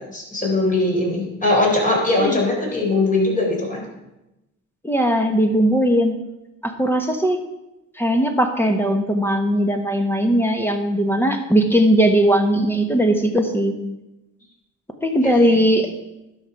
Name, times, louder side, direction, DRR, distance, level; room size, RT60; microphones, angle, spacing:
voice 1, 0.1-3.8 15.2-15.6, left 2 dB, 25° left, -2 dB, 4.0 m, -20 dB
voice 2, 4.8-6.1 6.6-7.4 8.0-13.7 15.0-15.9, equal, 5° left, 5 dB, 1.2 m, -19 dB
11.5 x 5.9 x 4.8 m, 0.93 s
cardioid pair, 90°, 30 cm